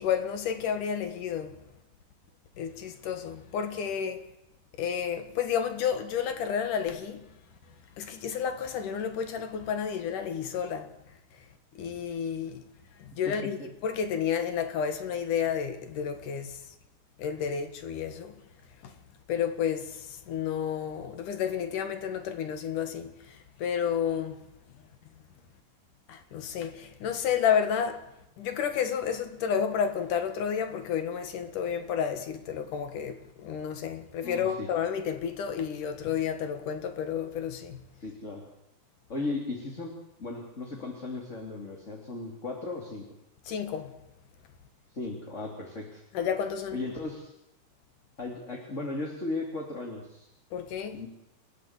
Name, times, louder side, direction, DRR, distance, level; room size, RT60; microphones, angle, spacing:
voice 1, 0.0-1.6 2.6-4.3 4.8-7.3 8.0-10.9 11.7-12.7 13.0-13.6 13.8-16.6 17.2-18.4 18.8-18.9 19.3-24.4 26.1-28.1 28.4-37.8 43.5-43.9 46.1-46.8 50.5-51.0, left 8 dB, 70° left, 3.2 m, -31 dB
voice 2, 13.3-13.7 34.2-34.7 38.0-38.4 39.1-43.1 44.9-46.0 46.7-47.3 48.2-50.3 50.9-51.1, left 3 dB, 20° left, 3.0 m, -36 dB
30.0 x 13.5 x 8.2 m
omnidirectional pair, 3.8 m